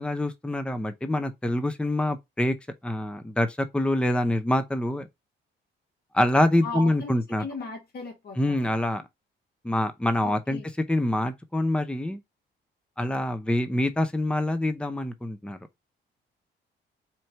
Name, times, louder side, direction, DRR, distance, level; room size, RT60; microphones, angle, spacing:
voice 1, 0.0-2.6 2.8-5.1 6.1-7.4 8.4-9.0 9.6-10.6 10.9-12.2 13.0-15.6, left 1 dB, 5° left, 0.7 m, -25 dB
voice 2, 6.6-7.1 7.4-8.7 10.2-10.7, left 2 dB, 55° left, 1.7 m, -37 dB
4.5 x 2.6 x 4.4 m
cardioid pair, 90°, 20 cm